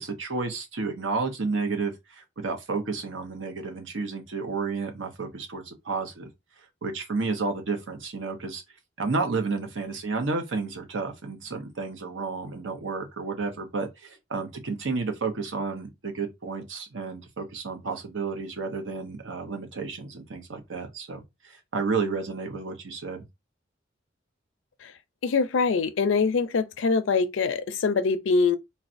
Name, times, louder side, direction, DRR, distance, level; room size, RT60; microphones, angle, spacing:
voice 1, 0.0-6.3 6.8-8.6 9.0-23.2, right 4 dB, 80° right, 0.8 m, -31 dB
voice 2, 25.2-28.6, left 4 dB, 85° left, 0.5 m, -24 dB
4.0 x 2.2 x 2.5 m
head